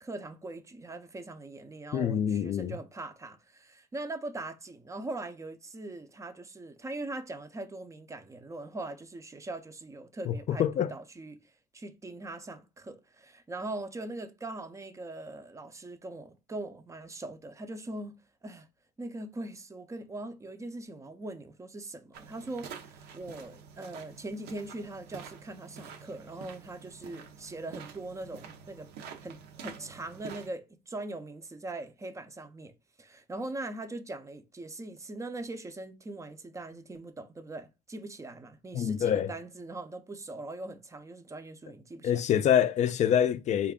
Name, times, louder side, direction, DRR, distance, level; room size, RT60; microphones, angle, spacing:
voice 1, 0.0-11.4 11.7-18.2 18.4-18.7 19.0-28.9 29.2-32.7 33.0-42.2, right 2 dB, 20° right, 0.5 m, -41 dB
voice 2, 1.9-2.8 10.3-10.9 38.7-39.3 42.0-43.7, left 9 dB, 45° left, 0.4 m, -26 dB
sound 1, 22.1-30.5, right 7 dB, 75° right, 0.6 m, -48 dB
4.0 x 2.4 x 3.6 m
cardioid pair, 110°, 17 cm